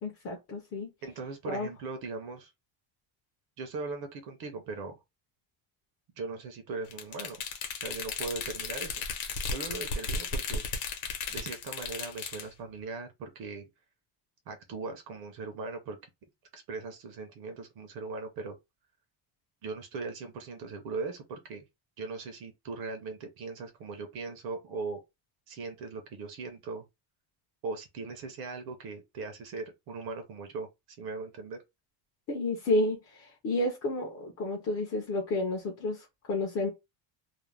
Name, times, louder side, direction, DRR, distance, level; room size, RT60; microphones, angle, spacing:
voice 1, 0.0-0.9 1.5-1.7 32.3-36.7, left 2 dB, 30° left, 0.4 m, -31 dB
voice 2, 1.0-2.5 3.6-5.0 6.2-7.4 7.8-10.6 11.3-13.7 14.5-16.0 16.5-18.6 19.6-21.7 22.0-25.0 25.5-26.8 27.6-31.6, right 4 dB, 50° right, 0.6 m, -39 dB
sound 1, 6.9-12.5, left 4 dB, 70° left, 0.9 m, -35 dB
2.5 x 2.0 x 3.1 m
cardioid pair, 175°, 49 cm